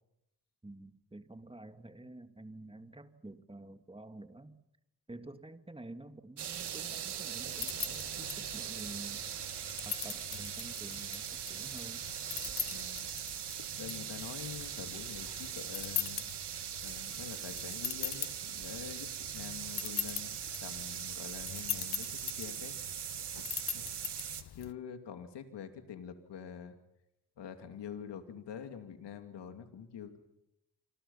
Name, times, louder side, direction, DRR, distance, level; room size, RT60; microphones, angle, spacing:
voice 1, 0.6-4.6 5.1-9.2 9.8-12.1, right 2 dB, 15° right, 8 dB, 2.2 m, -49 dB
sound 1, 6.4-24.4, right 9 dB, 80° right, 1.8 m, -41 dB
sound 2, 7.5-24.7, left 10 dB, 70° left, 1.0 m, -42 dB
sound 3, 7.9-13.5, left 2 dB, 25° left, 5.3 m, -62 dB
voice 2, 12.7-13.1 13.8-16.3 16.8-22.8 23.7-23.9 24.5-26.8 27.4-30.2, left 8 dB, 90° left, 7 dB, 2.8 m, -46 dB
27.5 x 26.5 x 5.7 m, 0.83 s
cardioid pair, 60°, 41 cm